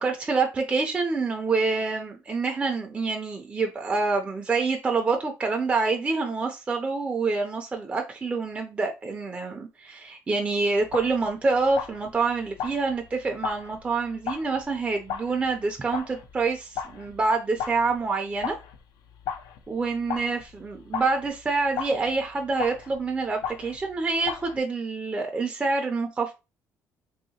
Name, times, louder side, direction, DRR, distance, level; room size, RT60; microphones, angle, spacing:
voice 1, 0.0-18.6 19.7-26.3, right 4 dB, 20° right, 0.4 m, -27 dB
sound 1, 10.8-17.3 17.6-24.0 24.3-24.6, left 7 dB, 85° left, 0.4 m, -37 dB
3.0 x 2.7 x 2.7 m
cardioid pair, 115°, 6 cm